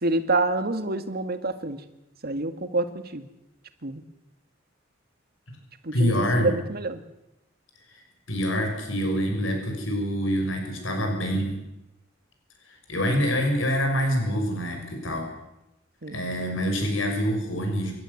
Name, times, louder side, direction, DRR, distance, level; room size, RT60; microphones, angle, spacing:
voice 1, 0.0-1.8 2.2-3.3 3.8-4.0 5.8-7.0 16.0-16.2, right 2 dB, 55° right, 9 dB, 2.0 m, -27 dB
voice 2, 5.9-6.5 7.9-8.0 8.3-11.6 12.7-15.3 16.1-17.9, equal, 80° left, 3 dB, 6.2 m, -26 dB
28.0 x 13.0 x 9.7 m, 0.92 s
head